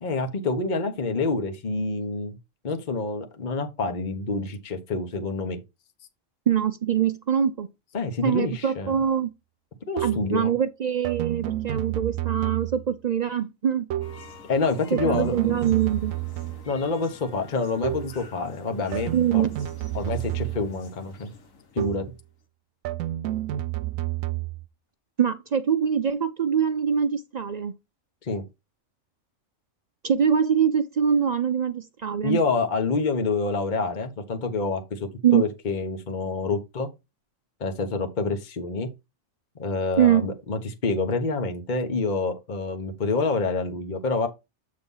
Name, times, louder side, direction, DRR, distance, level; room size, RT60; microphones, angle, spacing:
voice 1, 0.0-2.3 2.6-5.6 7.9-8.9 9.9-10.5 14.5-15.6 16.7-19.4 19.9-21.3 21.7-22.1 28.2-28.4 32.2-36.9 37.6-38.9 39.6-44.3, left 3 dB, 40° left, 1.1 m, -27 dB
voice 2, 6.5-7.7 8.2-9.3 10.0-13.9 14.9-16.1 19.1-19.5 25.2-27.7 30.0-32.4 35.2-35.5 40.0-40.3, right 8 dB, 65° right, 0.4 m, -23 dB
sound 1, 8.9-9.1 10.0-10.4 11.0-12.9 13.9-14.3 15.0-16.7 17.8-18.2 18.9-20.8 21.8-22.2 22.8-24.7, right 14 dB, 85° right, 1.0 m, -30 dB
sound 2, 14.0-22.3, left 4 dB, 85° left, 1.6 m, -48 dB
8.2 x 3.1 x 5.4 m
omnidirectional pair, 1.4 m